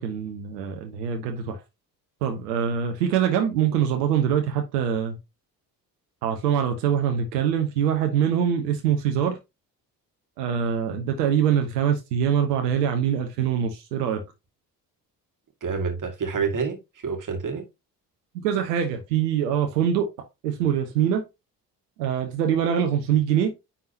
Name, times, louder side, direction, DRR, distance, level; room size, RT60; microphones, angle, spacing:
voice 1, 0.0-1.6 2.2-5.2 6.2-9.4 10.4-14.2 18.4-20.1 20.4-21.2 22.0-23.5, right 8 dB, 75° right, 1.1 m, -24 dB
voice 2, 15.6-17.6, right 5 dB, 40° right, 2.0 m, -28 dB
9.9 x 3.8 x 2.8 m
figure-of-eight pair, 45°, 49 cm